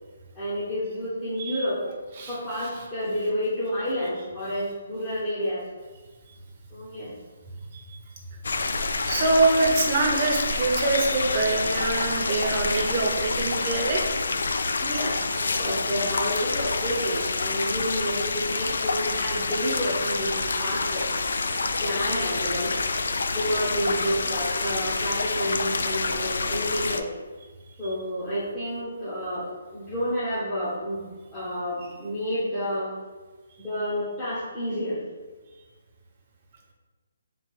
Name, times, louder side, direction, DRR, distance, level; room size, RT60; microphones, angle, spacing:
voice 1, 0.3-1.9 2.3-5.6 6.7-7.1 14.8-21.1 21.7-22.9 23.3-27.1 27.8-29.5 29.7-31.0 31.3-32.9 33.6-35.0, equal, 10° left, -12 dB, 0.7 m, -30 dB
voice 2, 2.1-2.7 7.7-8.0 8.3-8.4 9.0-14.2, right 3 dB, 30° right, 0 dB, 0.7 m, -25 dB
sound 1, 8.4-27.0, left 3 dB, 75° left, 0.3 m, -27 dB
3.1 x 2.9 x 4.5 m, 1.4 s
hypercardioid pair, 170°, 0 cm